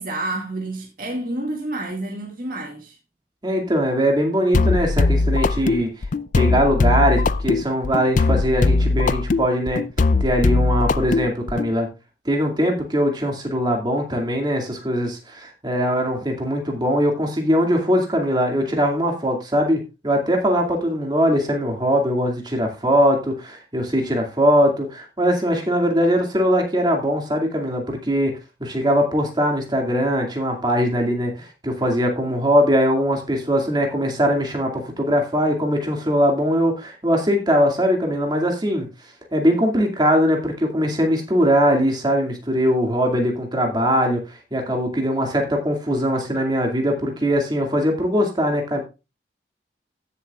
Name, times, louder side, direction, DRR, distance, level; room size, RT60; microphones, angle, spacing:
voice 1, 0.0-3.0, right 2 dB, 50° right, 2.1 m, -29 dB
voice 2, 3.4-5.9 6.3-9.8 10.2-11.9 12.3-38.9 39.3-48.8, equal, 25° right, 2.3 m, -21 dB
sound 1, 4.5-11.7, left 3 dB, 45° left, 0.4 m, -20 dB
16.5 x 7.1 x 2.4 m
head